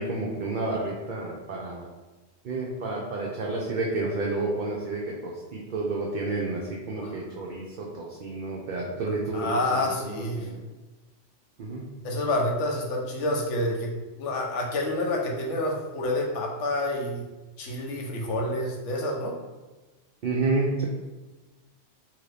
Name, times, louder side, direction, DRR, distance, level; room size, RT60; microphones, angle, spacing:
voice 1, 0.0-1.9 2.4-10.6 11.6-11.8 20.2-20.8, right 3 dB, 60° right, -3 dB, 0.5 m, -30 dB
voice 2, 9.3-10.5 12.0-13.9 14.2-17.3 17.6-19.3, left 1 dB, 75° left, 0 dB, 1.0 m, -28 dB
2.9 x 2.5 x 3.3 m, 1.2 s
omnidirectional pair, 1.3 m